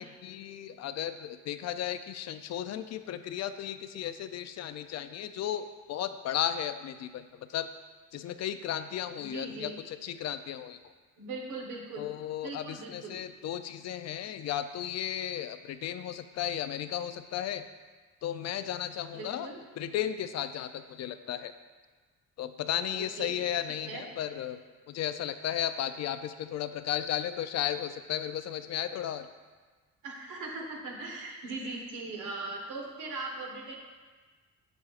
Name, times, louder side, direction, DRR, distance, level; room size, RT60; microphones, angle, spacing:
voice 1, 0.0-7.7 8.1-10.9 11.9-17.6 18.2-19.5 19.8-21.5 22.4-24.6 24.9-29.3, left 10 dB, 60° left, 10 dB, 0.4 m, -34 dB
voice 2, 9.2-9.8 11.2-12.1 12.4-13.2 19.1-19.6 22.9-23.4 23.7-24.0 30.0-33.8, right 3 dB, 85° right, 0 dB, 1.3 m, -40 dB
7.5 x 6.1 x 2.5 m, 1.4 s
cardioid pair, 90°, 30 cm